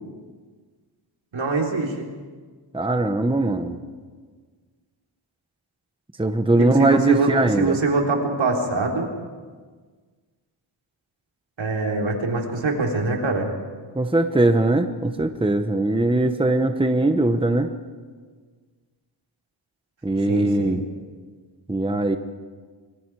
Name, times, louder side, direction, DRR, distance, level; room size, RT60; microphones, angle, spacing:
voice 1, 1.3-2.1 6.6-9.1 11.6-13.5 20.3-20.8, right 3 dB, 75° right, 1 dB, 3.9 m, -24 dB
voice 2, 2.7-3.8 6.2-7.8 13.9-17.7 20.0-20.9 21.7-22.2, right 2 dB, 10° right, 7 dB, 1.1 m, -20 dB
25.5 x 24.5 x 4.9 m, 1.5 s
wide cardioid pair, 100°, 47 cm